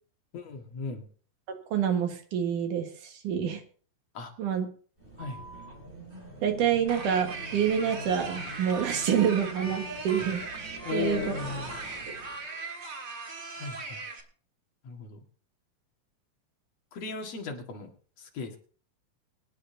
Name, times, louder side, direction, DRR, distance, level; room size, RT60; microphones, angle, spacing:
voice 1, 0.3-1.1 4.1-4.3 5.2-5.4 10.8-11.7 13.5-14.0 14.8-15.2 16.9-17.9 18.2-18.6, left 5 dB, 50° left, 2 dB, 2.7 m, -36 dB
voice 2, 1.7-3.6 4.4-4.7 6.4-10.4 10.9-11.2, right 8 dB, 65° right, 5 dB, 3.0 m, -27 dB
sound 1, 5.0-12.5, equal, 15° right, 5.5 m, -44 dB
sound 2, 6.9-14.2, right 3 dB, 40° right, 1.6 m, -39 dB
23.5 x 9.8 x 2.8 m, 0.43 s
omnidirectional pair, 4.1 m